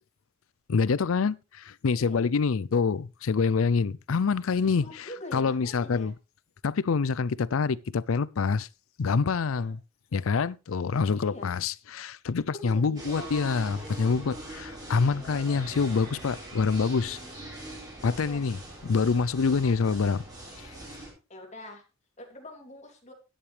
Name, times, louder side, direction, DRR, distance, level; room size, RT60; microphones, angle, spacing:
voice 1, 0.7-6.1 6.6-8.7 9.0-9.8 10.1-17.2 18.0-20.2, left 5 dB, 85° left, 0.5 m, -26 dB
voice 2, 4.8-6.1 9.5-9.7 11.1-11.5 12.5-13.3 18.0-18.4 19.6-19.9 21.3-21.8 22.2-23.1, left 1 dB, 35° left, 2.9 m, -44 dB
sound 1, 13.0-21.1, right 1 dB, 20° right, 4.8 m, -42 dB
12.5 x 10.0 x 3.3 m
head